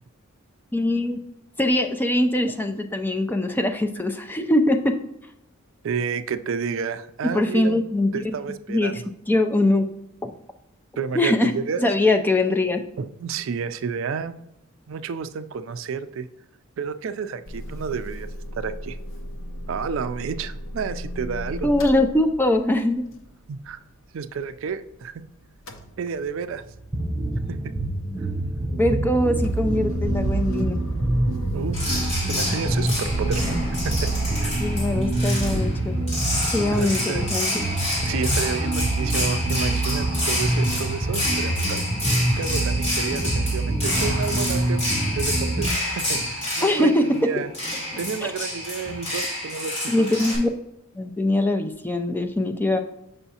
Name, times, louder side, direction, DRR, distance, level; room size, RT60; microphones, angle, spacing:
voice 1, 0.7-1.2 1.6-4.9 7.3-8.3 8.7-9.9 10.2-10.3 11.1-11.5 11.8-12.8 21.6-23.0 28.8-30.8 34.6-35.9 36.5-37.6 46.6-47.0 48.2-48.3 49.9-50.5 50.9-52.8, left 1 dB, 10° left, 5 dB, 0.4 m, -22 dB
voice 2, 5.8-7.8 8.1-9.0 11.0-11.8 13.0-14.3 14.9-16.3 16.8-18.3 18.5-19.0 19.7-21.7 23.5-23.8 24.1-25.2 26.0-26.6 27.5-27.8 31.5-31.8 32.3-33.4 33.8-34.1 34.4-34.6 36.7-37.2 38.0-41.8 42.3-44.9 45.1-47.5 48.0-50.2, right 6 dB, 65° right, 11 dB, 0.4 m, -30 dB
Motor vehicle (road) / Engine starting / Idling, 17.5-25.2 25.4-35.3, equal, 65° left, 0.8 m, -35 dB
sound 1, 26.9-45.7, right 1 dB, 20° right, 0.7 m, -26 dB
sound 2, 31.7-50.4, left 1 dB, 30° left, 2.3 m, -29 dB
6.9 x 5.5 x 2.8 m, 0.83 s
head